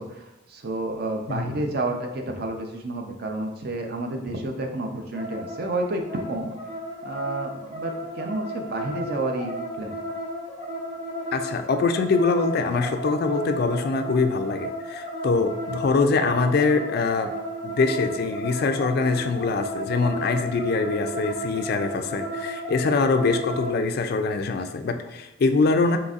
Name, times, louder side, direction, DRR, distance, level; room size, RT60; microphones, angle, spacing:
voice 1, 0.0-6.5 7.0-10.0, right 2 dB, 50° right, 3 dB, 0.5 m, -30 dB
sound 1, 5.1-23.8, right 1 dB, 30° right, 1.2 m, -34 dB
voice 2, 11.3-17.3 17.6-26.0, left 4 dB, 50° left, 7 dB, 0.3 m, -23 dB
4.2 x 3.9 x 2.4 m, 0.95 s
head